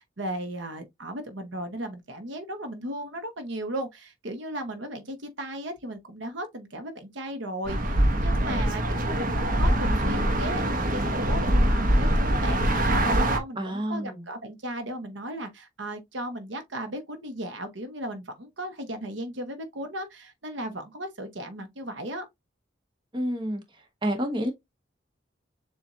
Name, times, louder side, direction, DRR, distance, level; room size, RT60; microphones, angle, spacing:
voice 1, 0.0-22.3, right 1 dB, 80° right, 1.0 m, -36 dB
sound 1, 7.7-13.4, right 1 dB, 50° right, 0.9 m, -23 dB
voice 2, 13.6-14.2 23.1-23.6 24.0-24.5, equal, 25° right, 1.2 m, -28 dB
7.1 x 2.5 x 2.6 m
head